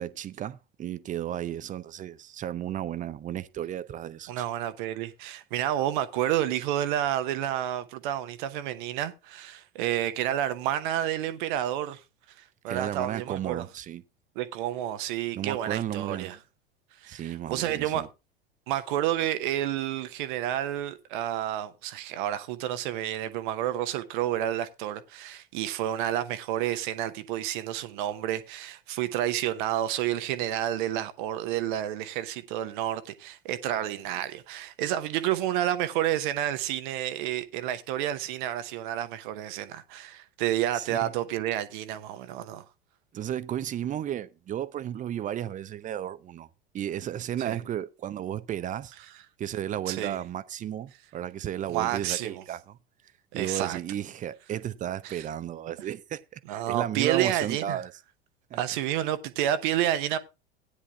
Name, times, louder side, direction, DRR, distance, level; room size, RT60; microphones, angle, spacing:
voice 1, 0.0-4.4 12.7-14.0 15.3-16.3 17.1-18.1 40.7-41.1 43.1-46.5 46.7-48.9 49.4-52.8 53.3-57.9 58.5-58.6, right 11 dB, 25° right, 0.6 m, -34 dB
voice 2, 4.3-12.0 12.6-13.6 14.4-16.4 17.0-18.1 18.7-42.6 47.4-47.6 49.9-50.2 51.7-52.4 53.3-53.8 55.0-55.2 56.5-57.8 58.6-60.2, right 12 dB, 55° right, 0.9 m, -30 dB
16.0 x 9.7 x 2.4 m
figure-of-eight pair, 80°, 30 cm